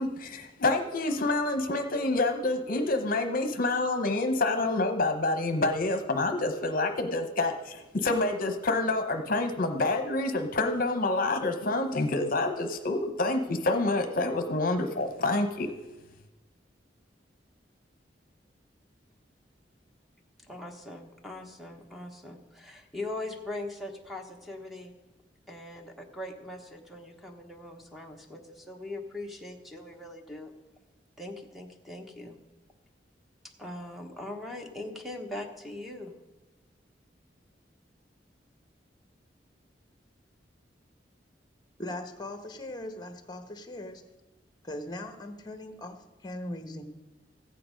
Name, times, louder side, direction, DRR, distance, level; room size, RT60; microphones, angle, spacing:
voice 1, 0.0-15.7, left 2 dB, 50° left, 6 dB, 0.9 m, -27 dB
voice 2, 20.5-24.9 25.5-30.5 31.2-32.4 33.6-36.1, left 2 dB, ahead, 2 dB, 1.2 m, -41 dB
voice 3, 41.8-44.0 44.6-46.0 46.2-46.8, left 1 dB, 25° left, 7 dB, 1.1 m, -39 dB
14.5 x 8.6 x 5.2 m, 1.1 s
head